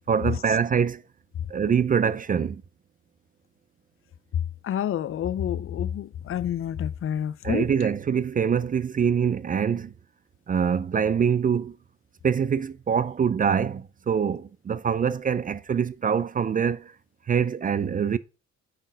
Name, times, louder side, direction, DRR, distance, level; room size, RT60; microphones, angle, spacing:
voice 1, 0.1-1.0 1.5-2.6 7.4-9.9 10.5-11.8 12.2-16.9 17.3-18.2, right 7 dB, 30° right, 0.3 m, -24 dB
voice 2, 4.6-7.7, left 10 dB, 45° left, 0.5 m, -28 dB
8.9 x 4.3 x 3.9 m
cardioid pair, 90°, 30 cm